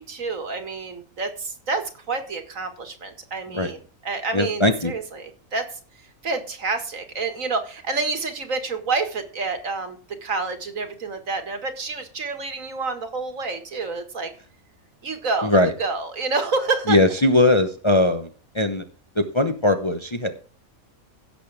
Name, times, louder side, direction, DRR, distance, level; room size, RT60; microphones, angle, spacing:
voice 1, 0.0-5.8 6.2-14.3 15.0-15.5 15.8-17.0, right 4 dB, 65° right, 7 dB, 2.1 m, -28 dB
voice 2, 4.3-4.9 15.4-15.7 16.9-18.3 18.5-18.8 19.2-20.3, left 2 dB, 25° left, 6 dB, 0.8 m, -19 dB
16.5 x 6.8 x 3.4 m, 0.39 s
omnidirectional pair, 1.5 m